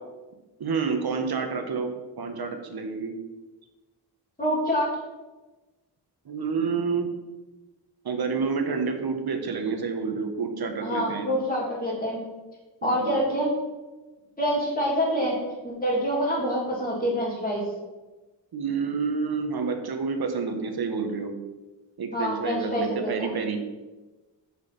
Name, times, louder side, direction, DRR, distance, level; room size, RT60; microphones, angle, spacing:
voice 1, 0.6-1.9 2.2-3.2 6.2-7.1 8.0-11.3 12.8-13.2 18.5-21.4 22.0-23.6, right 5 dB, 60° right, 6 dB, 1.2 m, -29 dB
voice 2, 4.4-4.9 10.8-12.2 12.8-13.5 14.4-15.4 15.6-17.7 22.1-23.3, equal, 20° left, -8 dB, 2.3 m, -26 dB
6.7 x 4.8 x 5.7 m, 1.2 s
wide cardioid pair, 125°, 43 cm